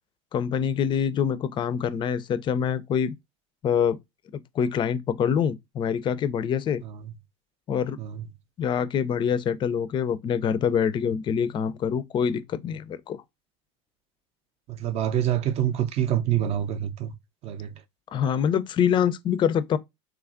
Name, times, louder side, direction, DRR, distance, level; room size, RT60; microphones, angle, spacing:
voice 1, 0.3-3.1 3.6-4.0 4.6-6.8 7.7-8.0 8.6-13.2 18.1-19.8, left 8 dB, 30° left, 0.4 m, -25 dB
voice 2, 6.8-7.1 8.0-8.3 14.7-17.1 17.4-17.8, right 11 dB, 45° right, 0.5 m, -27 dB
3.1 x 2.4 x 2.4 m
hypercardioid pair, 80°, 15 cm